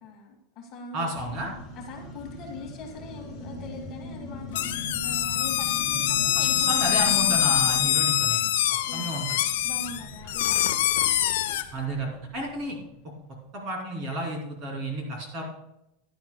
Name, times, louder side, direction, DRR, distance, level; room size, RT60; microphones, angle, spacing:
voice 1, 0.0-1.1 1.8-7.3 8.9-9.4 9.6-10.8, left 3 dB, 30° left, 0 dB, 1.6 m, -42 dB
voice 2, 0.9-1.5 6.3-8.4 8.9-9.3 11.7-12.8 13.5-15.4, right 1 dB, 30° right, 0 dB, 2.7 m, -31 dB
sound 1, 1.1-13.0, left 1 dB, 15° left, 4.0 m, -40 dB
sound 2, 4.5-11.6, left 13 dB, 70° left, 0.7 m, -24 dB
15.5 x 10.5 x 2.2 m, 0.86 s
supercardioid pair, 180°, 0 cm